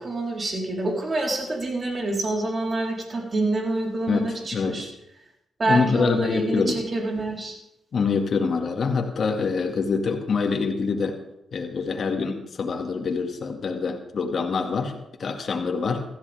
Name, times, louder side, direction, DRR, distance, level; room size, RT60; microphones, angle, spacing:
voice 1, 0.0-4.9 5.6-7.6, right 2 dB, 40° right, -1 dB, 4.1 m, -27 dB
voice 2, 4.1-4.9 5.7-6.8 7.9-11.2 11.5-14.9 15.2-16.0, left 5 dB, 55° left, 3 dB, 2.1 m, -25 dB
16.0 x 14.0 x 3.6 m, 0.85 s
cardioid pair, 80°, 0 cm